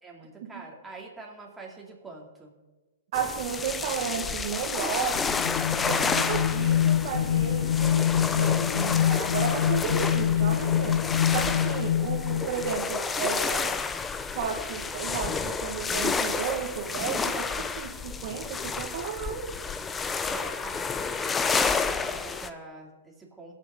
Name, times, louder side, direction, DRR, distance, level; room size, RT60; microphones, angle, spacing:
voice 1, 0.0-2.5 11.5-11.8 20.2-23.6, right 3 dB, 5° right, -3 dB, 2.7 m, -45 dB
sound 1, 3.1-22.5, left 5 dB, 15° left, 0.6 m, -30 dB
voice 2, 3.1-5.3 5.8-11.0 11.3-13.8 14.3-19.4, right 7 dB, 55° right, 2 dB, 1.6 m, -33 dB
sound 2, 5.1-12.8, left 10 dB, 80° left, 0.6 m, -25 dB
21.0 x 7.5 x 3.8 m, 1.2 s
hypercardioid pair, 140°, 0 cm